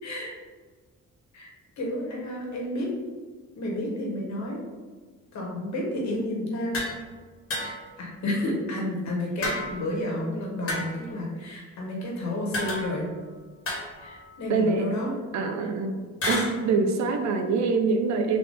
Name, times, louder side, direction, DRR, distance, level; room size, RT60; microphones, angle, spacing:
voice 1, 0.0-0.3 1.3-1.5 1.8-2.9 3.6-4.6 5.3-6.8 7.6-13.1 14.0-15.1 16.7-16.8, left 1 dB, 65° left, -3 dB, 1.3 m, -31 dB
sound 1, 6.7-7.0 7.5-8.0 9.4-10.0 10.7-11.1 12.5-13.2 13.7-14.4 16.2-16.5, left 1 dB, 50° left, 1.3 m, -31 dB
voice 2, 14.5-14.9 15.3-16.0 16.3-18.4, right 4 dB, 65° right, 5 dB, 0.6 m, -24 dB
4.0 x 2.9 x 3.5 m, 1.4 s
cardioid pair, 90°, 30 cm